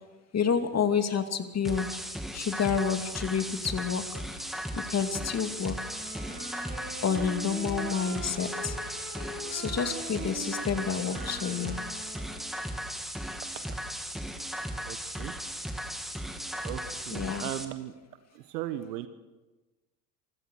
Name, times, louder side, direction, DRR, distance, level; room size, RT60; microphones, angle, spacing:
voice 1, 0.3-1.9 2.3-4.2 4.7-5.8 7.0-8.8 9.5-11.7 17.1-17.4, left 7 dB, 35° left, 7 dB, 2.6 m, -29 dB
sound 1, 1.6-17.6, equal, ahead, 2.9 m, -37 dB
sound 2, 5.8-12.6, right 1 dB, 20° right, 6.3 m, -42 dB
voice 2, 14.8-15.3 16.6-17.9 18.3-19.1, right 13 dB, 75° right, 10 dB, 1.5 m, -37 dB
27.0 x 16.5 x 6.4 m, 1.2 s
hypercardioid pair, 80°, 48 cm